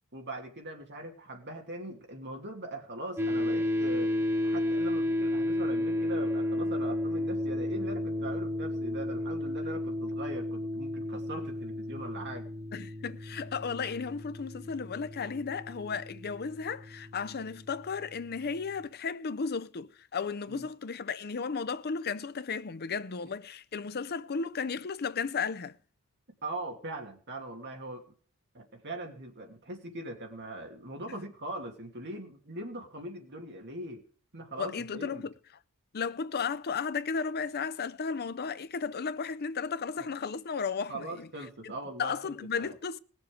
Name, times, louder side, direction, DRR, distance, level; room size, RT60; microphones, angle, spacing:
voice 1, 0.1-4.1 4.4-12.5 20.5-20.7 26.4-28.0 28.5-34.0 34.3-35.3 40.0-40.1 40.9-42.3 42.6-42.7, right 1 dB, 50° right, 2.7 m, -41 dB
sound 1, 3.2-18.4, left 1 dB, 10° right, 1.2 m, -33 dB
voice 2, 12.7-25.8 34.6-35.3 35.9-41.3 41.6-41.7 42.0-43.0, left 5 dB, 45° left, 0.6 m, -34 dB
18.5 x 7.2 x 5.1 m
head